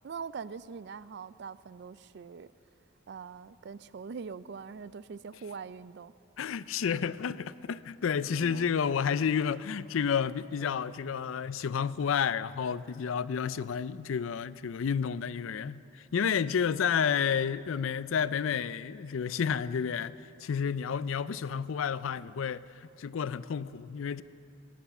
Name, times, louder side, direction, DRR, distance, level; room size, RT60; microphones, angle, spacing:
voice 1, 0.0-2.5 3.1-6.1 8.3-8.7, right 5 dB, 60° right, 0.4 m, -42 dB
voice 2, 6.4-20.2 20.4-22.6 23.0-24.2, left 7 dB, 85° left, 0.4 m, -30 dB
17.5 x 10.5 x 7.0 m
head